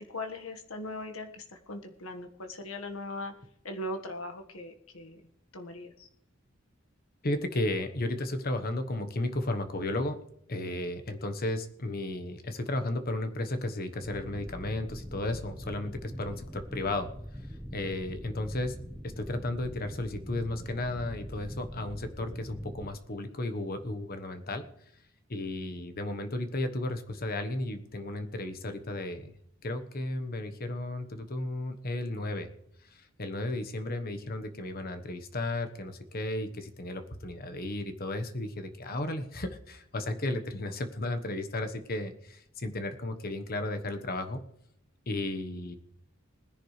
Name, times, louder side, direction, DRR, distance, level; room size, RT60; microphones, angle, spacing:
voice 1, 0.0-3.3 3.6-5.2 5.5-6.1, left 1 dB, 80° left, 5 dB, 1.6 m, -39 dB
voice 2, 7.2-10.2 10.5-17.1 17.7-18.8 19.0-24.6 25.3-29.3 29.6-32.5 32.8-44.4 45.1-45.8, left 2 dB, 45° left, 8 dB, 1.2 m, -34 dB
sound 1, 14.0-22.9, equal, 5° right, 1.1 m, -43 dB
20.0 x 10.5 x 3.3 m, 0.73 s
head